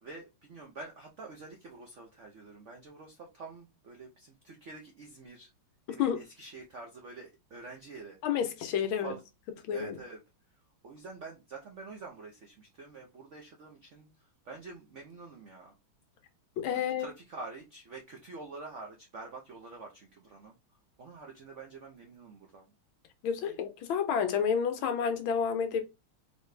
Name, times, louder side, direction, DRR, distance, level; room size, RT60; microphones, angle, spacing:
voice 1, 0.0-5.5 5.9-8.2 9.0-9.2 9.7-10.2 10.8-15.7 16.7-20.6 21.0-22.7 23.4-23.6, right 3 dB, 85° right, 0.6 m, -47 dB
voice 2, 8.2-9.1 9.6-9.9 16.6-17.1 23.2-25.8, left 7 dB, 75° left, 1.5 m, -30 dB
4.0 x 3.0 x 3.2 m
omnidirectional pair, 2.3 m